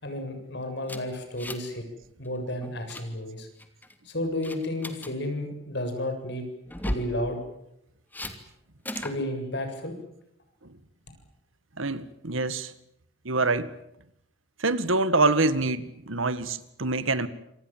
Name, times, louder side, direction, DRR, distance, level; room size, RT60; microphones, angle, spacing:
voice 1, 0.0-1.8 2.2-3.5 4.0-6.4 6.8-7.4 9.0-9.9, left 1 dB, 55° left, 7.7 m, -32 dB
sound 1, 0.9-1.8 2.0-2.3 2.6-3.1 3.6-4.0 4.4-5.1 6.7-7.1 8.1-8.4 8.9-9.2, left 1 dB, 10° left, 2.7 m, -35 dB
voice 2, 11.8-12.7 13.3-13.7 14.6-17.3, right 3 dB, 75° right, 2.0 m, -25 dB
27.5 x 26.0 x 7.5 m
head